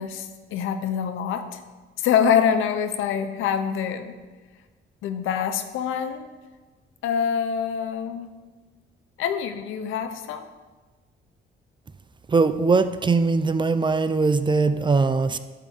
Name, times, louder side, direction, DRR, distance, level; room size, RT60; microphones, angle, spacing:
voice 1, 0.0-1.6 2.0-4.1 5.0-6.3 7.0-8.3 9.2-10.5, left 8 dB, 85° left, 9 dB, 0.7 m, -25 dB
voice 2, 12.3-15.4, right 4 dB, 25° right, 12 dB, 0.5 m, -21 dB
10.5 x 3.6 x 7.1 m, 1.3 s
cardioid pair, 90°, 20 cm